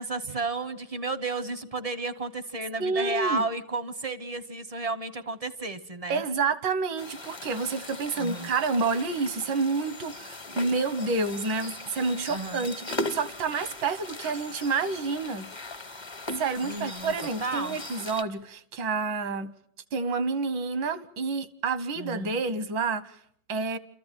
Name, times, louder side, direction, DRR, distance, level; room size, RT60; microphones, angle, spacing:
voice 1, 0.0-6.2 8.2-8.5 12.3-12.6 16.6-17.1 17.4-17.8 22.0-22.4, right 3 dB, 30° right, 0.6 m, -32 dB
voice 2, 2.8-3.4 6.1-12.8 13.1-15.5 16.4-19.5 19.9-23.1 23.5-23.8, right 4 dB, 80° right, 1.9 m, -29 dB
sound 1, 7.0-18.2, left 2 dB, 25° left, 0.7 m, -39 dB
29.0 x 14.0 x 9.2 m
omnidirectional pair, 2.0 m